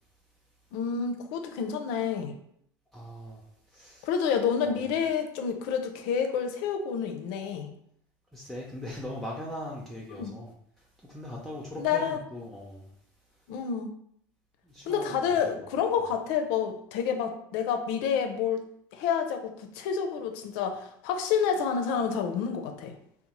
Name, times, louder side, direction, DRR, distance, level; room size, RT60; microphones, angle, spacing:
voice 1, 0.7-2.3 4.0-7.7 10.2-10.4 11.8-12.2 13.5-13.9 14.9-18.7 18.9-23.0, left 7 dB, 70° left, 6 dB, 0.4 m, -29 dB
voice 2, 2.9-4.1 4.6-4.8 8.3-12.9 14.6-15.4, left 1 dB, 5° left, -4 dB, 0.5 m, -40 dB
2.8 x 2.0 x 2.9 m, 0.68 s
hypercardioid pair, 85°, 11 cm